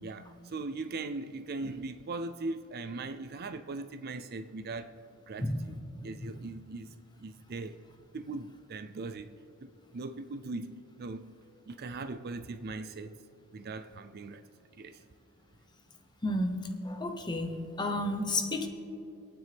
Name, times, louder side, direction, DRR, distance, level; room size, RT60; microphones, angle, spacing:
voice 1, 0.0-5.0 5.3-5.8 6.0-6.9 7.2-7.8 8.1-9.3 9.9-11.3 11.7-13.2 13.5-14.4 14.8-15.0, right 3 dB, 45° right, 0.4 m, -39 dB
voice 2, 16.2-18.7, left 1 dB, 20° left, 1.0 m, -32 dB
26.5 x 9.4 x 3.5 m
head